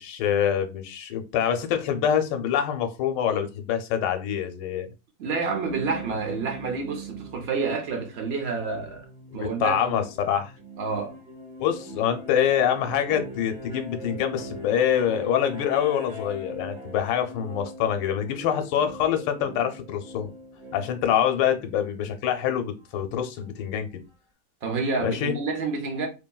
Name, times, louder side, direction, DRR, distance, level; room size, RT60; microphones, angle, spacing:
voice 1, 0.0-4.9 9.3-10.5 11.6-20.3 20.7-23.9 25.0-25.3, left 9 dB, 85° left, 1.2 m, -25 dB
voice 2, 5.2-9.0 9.3-10.0 10.8-11.1 24.6-26.1, right 4 dB, 75° right, 0.5 m, -29 dB
sound 1, 5.6-21.9 23.4-23.5, right 1 dB, 40° right, 0.8 m, -41 dB
2.6 x 2.6 x 2.2 m
omnidirectional pair, 1.9 m